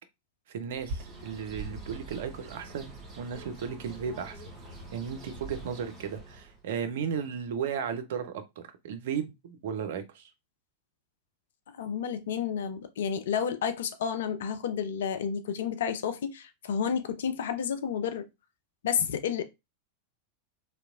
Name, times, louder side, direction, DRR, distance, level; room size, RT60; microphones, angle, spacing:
voice 1, 0.5-4.4 4.9-10.3, right 7 dB, 55° right, 0.4 m, -35 dB
Bird, 0.7-6.6, right 2 dB, 25° right, 1.1 m, -43 dB
voice 2, 11.8-18.3 18.8-19.4, left 7 dB, 60° left, 0.3 m, -31 dB
2.8 x 2.1 x 2.3 m
figure-of-eight pair, 90°, 0 cm